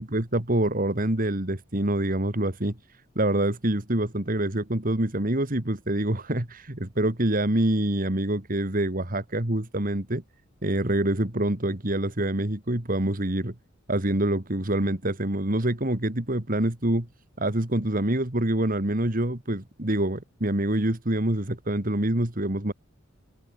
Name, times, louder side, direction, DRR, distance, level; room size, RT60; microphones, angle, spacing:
voice 1, 0.0-10.2 10.6-13.5 13.9-17.1 17.4-22.7, right 1 dB, 40° right, 2.4 m, -26 dB
head